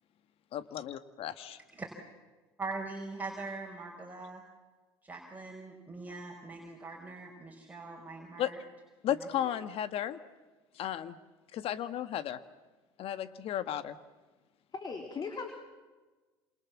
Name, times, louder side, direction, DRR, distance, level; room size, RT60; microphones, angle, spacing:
voice 1, 0.5-1.6 8.4-8.5 9.0-10.2 10.7-11.2 11.5-12.4 13.0-14.0, left 11 dB, 55° left, 11 dB, 1.8 m, -34 dB
voice 2, 2.6-4.4 5.0-8.6 9.1-9.5, right 3 dB, 15° right, -1 dB, 5.5 m, -42 dB
voice 3, 14.7-15.5, left 5 dB, 40° left, 5 dB, 3.8 m, -38 dB
28.5 x 27.5 x 7.4 m, 1.3 s
hypercardioid pair, 70°, 12 cm